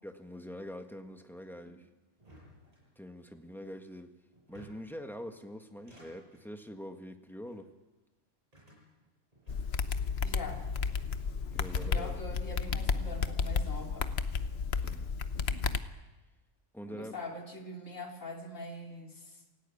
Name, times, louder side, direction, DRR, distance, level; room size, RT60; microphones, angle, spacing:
voice 1, 0.0-1.8 3.0-4.1 4.5-7.7 11.5-12.2 14.8-15.1 16.7-17.2, equal, ahead, 5 dB, 1.7 m, -44 dB
sound 1, 2.2-3.3 4.3-5.0 5.7-6.5 7.3-7.7 8.5-10.0 10.3-11.1 11.6-12.3, right 1 dB, 30° right, 8.2 m, -55 dB
sound 2, 9.5-15.8, left 5 dB, 55° left, 1.2 m, -32 dB
voice 2, 10.2-10.6 11.9-14.1 16.9-19.4, left 1 dB, 85° left, 2 dB, 3.4 m, -43 dB
28.0 x 16.5 x 8.6 m, 1.2 s
omnidirectional pair, 1.3 m